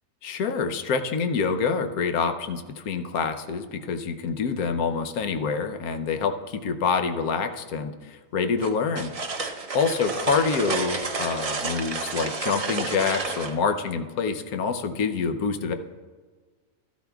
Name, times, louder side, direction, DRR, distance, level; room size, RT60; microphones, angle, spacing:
voice 1, 0.2-9.1 9.7-15.7, left 5 dB, 75° left, 7 dB, 1.2 m, -26 dB
sound 1, 8.6-13.6, right 4 dB, 45° right, 0.5 m, -30 dB
13.5 x 12.0 x 2.3 m, 1.4 s
omnidirectional pair, 1.6 m